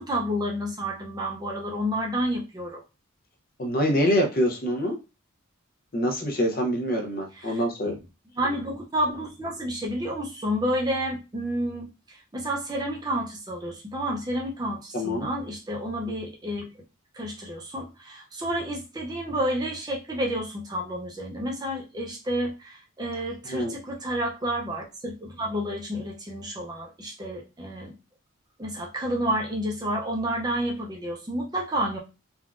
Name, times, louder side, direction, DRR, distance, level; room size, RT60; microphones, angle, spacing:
voice 1, 0.0-2.8 7.3-8.0 8.4-16.7 17.1-27.9 28.6-32.0, equal, 20° right, -1 dB, 0.5 m, -30 dB
voice 2, 3.6-5.0 5.9-8.0 14.9-15.3 23.5-23.7, equal, 45° left, 3 dB, 0.6 m, -25 dB
3.5 x 2.3 x 2.4 m, 0.28 s
head